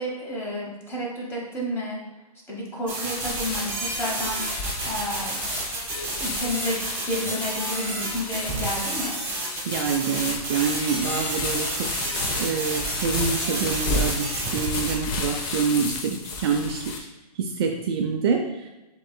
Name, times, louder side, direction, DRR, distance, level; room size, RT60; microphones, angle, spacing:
voice 1, 0.0-2.0 2.5-4.4 4.8-5.5 5.9-9.2, equal, 10° left, -3 dB, 1.1 m, -31 dB
sound 1, 2.9-15.0, right 2 dB, 10° right, 1.1 m, -31 dB
sound 2, 3.2-17.0, left 3 dB, 30° left, 0.6 m, -32 dB
voice 2, 9.7-11.7 12.4-17.1 17.4-18.7, right 6 dB, 40° right, 2 dB, 0.4 m, -26 dB
7.5 x 3.0 x 2.2 m, 1.1 s
hypercardioid pair, 140°, 20 cm